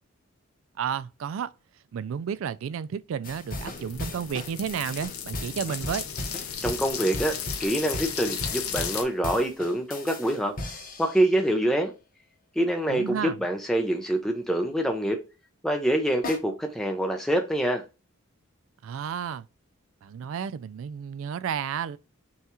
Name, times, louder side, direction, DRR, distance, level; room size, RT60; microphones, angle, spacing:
voice 1, 0.8-1.5 1.9-6.0 12.9-13.4 18.8-19.5 20.0-22.0, right 7 dB, 65° right, 0.3 m, -32 dB
sound 1, 3.2-11.4 16.2-16.4, left 2 dB, 40° left, 0.8 m, -37 dB
sound 2, 3.6-9.0, left 7 dB, 85° left, 0.7 m, -35 dB
voice 2, 6.6-10.5 11.0-11.9 12.6-15.2 15.6-17.8, right 1 dB, ahead, 0.5 m, -25 dB
5.6 x 2.4 x 2.9 m
head